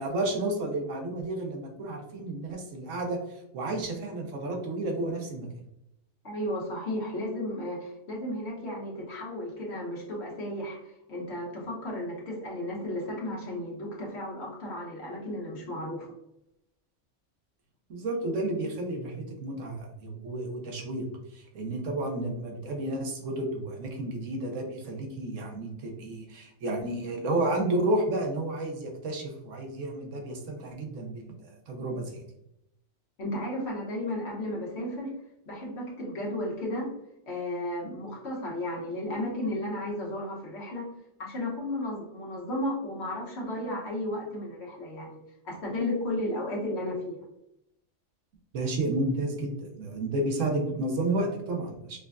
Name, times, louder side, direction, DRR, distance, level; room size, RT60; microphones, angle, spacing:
voice 1, 0.0-5.5 17.9-21.1 21.3-32.2 48.5-52.0, right 2 dB, 90° right, 2 dB, 1.2 m, -31 dB
voice 2, 6.2-10.8 11.1-16.1 33.2-35.1 35.5-36.9 37.3-40.9 41.2-45.2 45.4-47.2, left 1 dB, 65° left, -3 dB, 1.3 m, -34 dB
4.9 x 2.2 x 2.4 m, 0.83 s
omnidirectional pair, 1.3 m